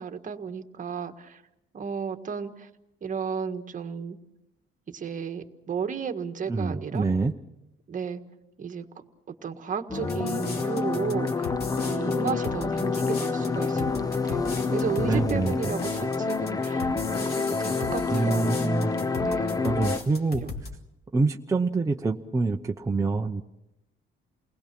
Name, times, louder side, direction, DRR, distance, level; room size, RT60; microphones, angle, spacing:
voice 1, 0.0-1.4 1.7-2.7 3.0-4.2 4.9-7.1 7.9-8.2 8.6-8.9 9.3-18.5 19.2-20.0 20.4-20.5, right 6 dB, 40° right, 7 dB, 1.6 m, -34 dB
voice 2, 6.5-7.3 15.0-15.7 18.1-18.9 19.3-20.4 21.1-23.4, right 3 dB, 15° right, 2 dB, 0.8 m, -26 dB
sound 1, 9.9-20.0, left 4 dB, 15° left, 0.7 m, -28 dB
sound 2, 10.1-20.7, left 4 dB, 50° left, 3.0 m, -38 dB
29.5 x 20.0 x 6.1 m, 0.88 s
cardioid pair, 150°, 21 cm